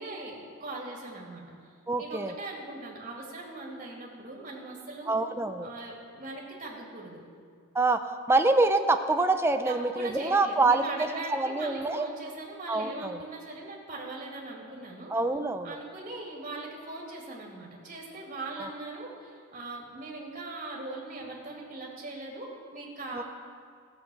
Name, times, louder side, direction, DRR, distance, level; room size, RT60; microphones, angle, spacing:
voice 1, 0.0-1.7 2.0-5.1 5.6-7.2 9.7-15.1 15.6-23.2, right 2 dB, 35° right, -2 dB, 2.1 m, -40 dB
voice 2, 1.9-2.3 5.1-5.7 7.7-12.1 12.7-13.2 15.1-15.8 18.6-18.7 23.1-23.2, right 3 dB, 10° right, 7 dB, 0.4 m, -26 dB
15.5 x 5.8 x 7.6 m, 2.1 s
head